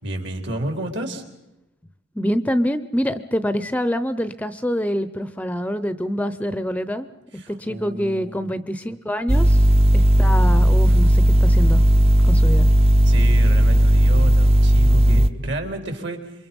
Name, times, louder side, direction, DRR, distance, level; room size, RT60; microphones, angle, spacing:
voice 1, 0.0-1.2 7.3-8.5 13.0-16.3, right 1 dB, 65° right, 5 dB, 3.6 m, -31 dB
voice 2, 2.2-7.1 7.5-9.6 9.9-11.8 12.2-12.7, equal, 10° left, 13 dB, 0.7 m, -25 dB
sound 1, 9.3-15.3, equal, 30° right, 0.8 m, -15 dB
27.5 x 23.5 x 5.3 m, 0.92 s
head